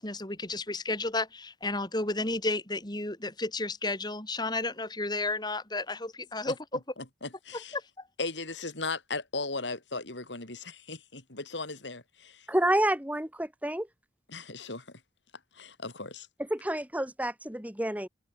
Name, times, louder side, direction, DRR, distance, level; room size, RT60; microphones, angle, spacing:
voice 1, 0.0-6.8 7.5-7.8, left 2 dB, 25° left, 4.4 m, -32 dB
voice 2, 7.2-7.8 8.2-12.5 14.3-15.0 15.5-16.3, left 3 dB, 85° left, 5.2 m, -37 dB
voice 3, 12.5-13.9 16.5-18.1, right 1 dB, 10° right, 2.1 m, -29 dB
head